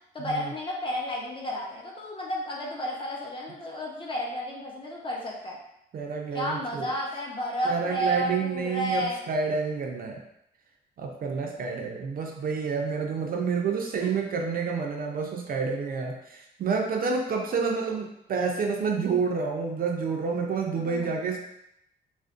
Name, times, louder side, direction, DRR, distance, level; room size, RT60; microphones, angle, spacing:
voice 1, 0.1-5.6 6.3-9.2 11.3-11.9 14.0-14.1 17.5-17.9 20.7-21.2, equal, 25° left, -3 dB, 0.6 m, -32 dB
voice 2, 5.9-6.9 7.7-10.2 11.0-21.4, right 5 dB, 45° right, 1 dB, 0.4 m, -29 dB
2.4 x 2.1 x 2.4 m, 0.80 s
cardioid pair, 90°, 20 cm